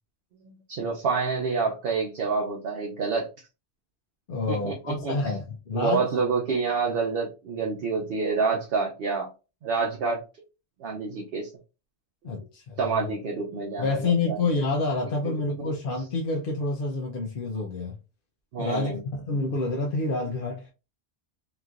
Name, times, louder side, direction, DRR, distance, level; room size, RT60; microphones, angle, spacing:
voice 1, 0.4-3.3 4.5-5.4 5.7-9.3 9.6-10.2 10.8-11.5 12.8-14.4 15.2-15.3 18.5-19.0, right 4 dB, 65° right, 0.8 m, -28 dB
voice 2, 4.3-6.1 12.2-13.1 13.8-18.0 18.6-20.7, left 3 dB, 60° left, 0.7 m, -28 dB
2.9 x 2.5 x 2.4 m
omnidirectional pair, 1.1 m